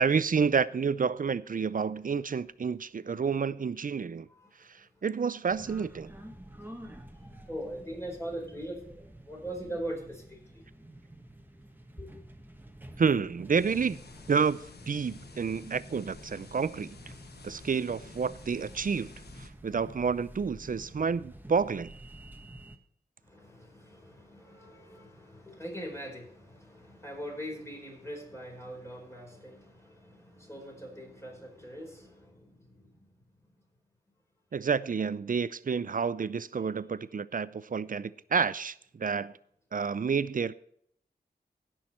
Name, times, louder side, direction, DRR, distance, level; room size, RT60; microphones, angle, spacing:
voice 1, 0.0-4.3 5.0-6.1 13.0-14.0 14.3-14.6 14.9-16.9 17.4-19.1 19.4-21.9 34.5-39.3 39.7-40.5, right 6 dB, 55° right, 0.5 m, -29 dB
voice 2, 4.3-5.1 6.5-10.6 12.0-12.2 23.2-33.2 33.5-33.6 36.6-36.7, right 1 dB, 15° left, 4.7 m, -42 dB
sound 1, 5.5-22.8, right 1 dB, 10° right, 1.4 m, -49 dB
sound 2, 13.5-19.5, left 5 dB, 80° left, 1.1 m, -52 dB
16.5 x 6.4 x 4.4 m
wide cardioid pair, 65°, 16 cm